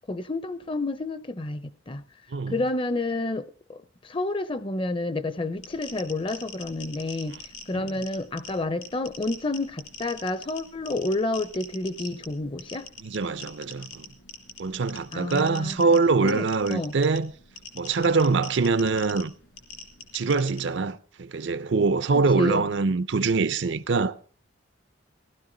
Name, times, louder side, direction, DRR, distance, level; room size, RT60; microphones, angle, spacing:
voice 1, 0.0-2.0 2.5-12.9 15.1-16.9 22.3-22.7, left 2 dB, 25° left, 0.6 m, -30 dB
sound 1, 5.5-20.6, left 3 dB, 70° left, 2.8 m, -44 dB
voice 2, 13.0-14.1 14.6-17.3 17.7-19.3 20.1-24.1, right 4 dB, 65° right, 0.6 m, -24 dB
15.5 x 12.5 x 3.9 m
head